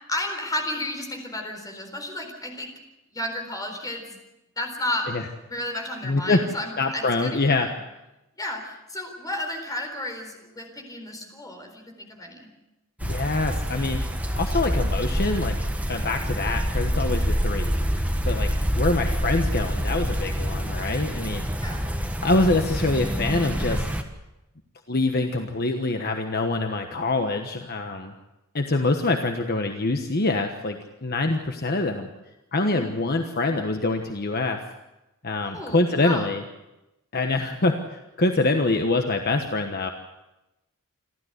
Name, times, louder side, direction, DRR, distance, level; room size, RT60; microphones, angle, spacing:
voice 1, 0.1-2.7 3.1-4.2 4.6-5.1 5.4-7.7 8.4-12.5 21.6-21.9 32.6-32.9 35.5-36.3, left 1 dB, 15° left, 4 dB, 4.1 m, -32 dB
voice 2, 6.0-6.4 6.8-7.7 13.0-14.0 14.4-15.6 15.9-17.7 18.2-18.5 18.8-21.4 22.2-23.8 24.9-28.1 28.5-32.1 32.5-34.6 35.2-36.4 37.1-39.9, left 2 dB, 45° left, 5 dB, 1.3 m, -25 dB
sound 1, 13.0-24.0, equal, 5° right, 1.5 m, -26 dB
28.0 x 13.0 x 8.2 m, 0.98 s
head